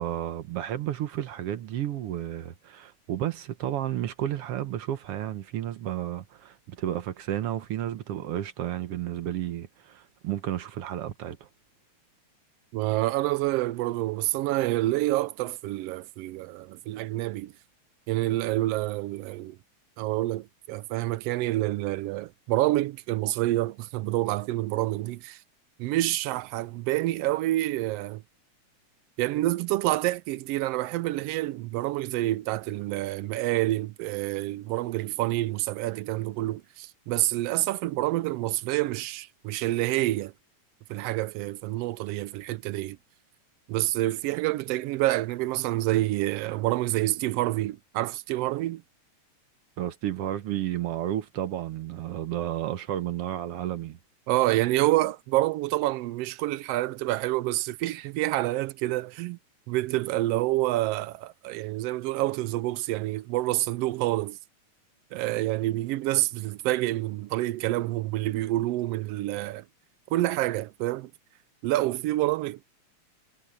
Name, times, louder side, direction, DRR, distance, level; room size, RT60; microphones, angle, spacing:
voice 1, 0.0-11.5 49.8-54.0, right 12 dB, 65° right, 1.6 m, -32 dB
voice 2, 12.7-17.5 18.1-19.6 20.0-25.4 25.8-28.2 29.2-40.3 40.9-43.0 43.7-48.8 54.3-59.4 59.7-64.4 65.1-69.6 70.1-71.1 71.6-72.6, right 16 dB, 85° right, 1.4 m, -27 dB
omnidirectional pair, 3.3 m